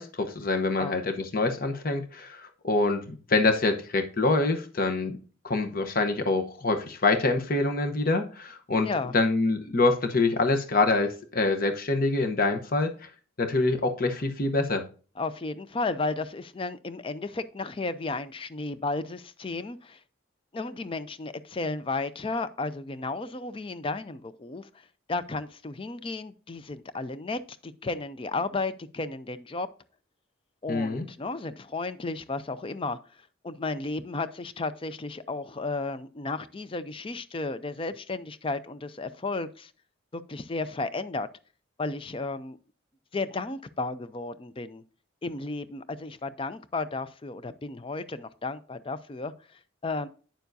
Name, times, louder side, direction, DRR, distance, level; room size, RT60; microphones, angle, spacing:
voice 1, 0.0-5.2 5.4-8.9 9.1-12.9 13.4-14.8 30.7-31.0, left 3 dB, 45° left, 0.9 m, -25 dB
voice 2, 8.8-9.1 15.2-20.0 20.5-24.7 25.1-29.7 30.6-33.0 33.4-39.7 40.1-41.3 41.8-42.6 43.1-44.8 45.2-49.3 49.8-50.1, left 3 dB, 25° left, 0.4 m, -33 dB
9.1 x 6.9 x 2.6 m
head